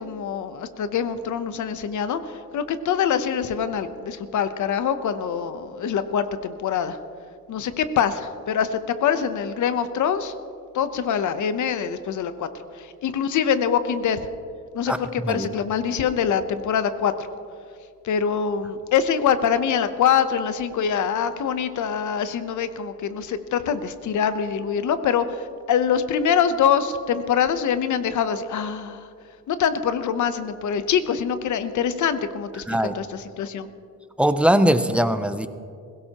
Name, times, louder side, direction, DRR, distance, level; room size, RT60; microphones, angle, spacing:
voice 1, 0.0-7.0 7.5-10.3 10.7-12.5 12.7-14.2 14.7-17.3 18.0-29.1 29.5-33.7, left 7 dB, 55° left, 11 dB, 0.8 m, -24 dB
voice 2, 34.2-35.5, equal, 5° right, 10 dB, 0.4 m, -20 dB
20.5 x 17.0 x 2.9 m, 2.4 s
cardioid pair, 155°, 35 cm